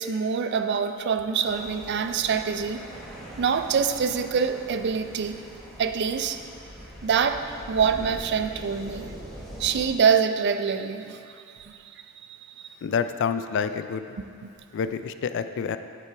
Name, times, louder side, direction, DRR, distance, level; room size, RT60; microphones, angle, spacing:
voice 1, 0.0-2.8 3.4-5.4 5.8-6.4 7.0-7.4 7.7-9.1 9.6-11.8 12.3-12.7 14.4-14.5, right 6 dB, 50° right, 8 dB, 0.4 m, -25 dB
sound 1, 1.4-9.9, equal, ahead, 1.4 m, -42 dB
voice 2, 12.8-14.1 14.7-15.8, left 6 dB, 55° left, 10 dB, 0.3 m, -28 dB
8.3 x 7.5 x 3.3 m, 2.4 s
head